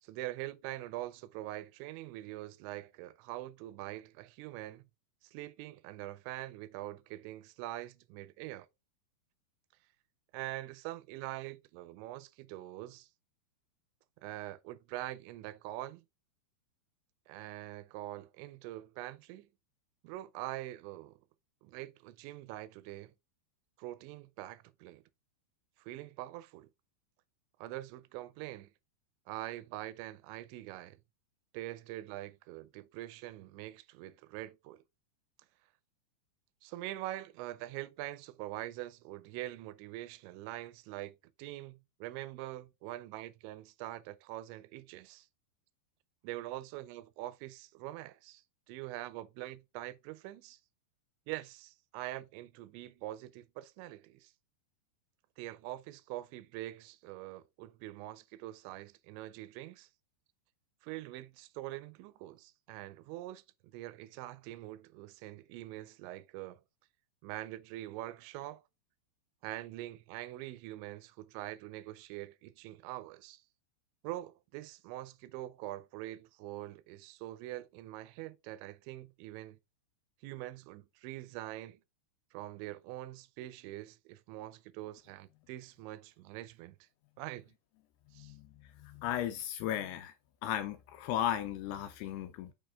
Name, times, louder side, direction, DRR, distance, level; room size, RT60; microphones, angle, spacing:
voice 1, 0.0-4.9 5.3-8.7 10.3-13.1 14.2-16.0 17.3-19.5 20.0-21.2 21.6-23.1 23.8-25.0 25.8-26.7 27.6-28.7 29.3-31.0 31.5-34.8 36.6-45.3 46.2-48.4 48.7-50.6 51.3-54.3 55.4-59.9 60.8-66.6 67.2-68.6 69.4-73.4 74.0-79.6 80.2-81.8 82.3-86.8 87.2-87.5 88.1-88.3, right 16 dB, 90° right, 2.9 m, -44 dB
voice 2, 88.8-90.1 90.4-92.5, left 11 dB, 80° left, 2.4 m, -35 dB
6.6 x 6.0 x 2.4 m
omnidirectional pair, 5.1 m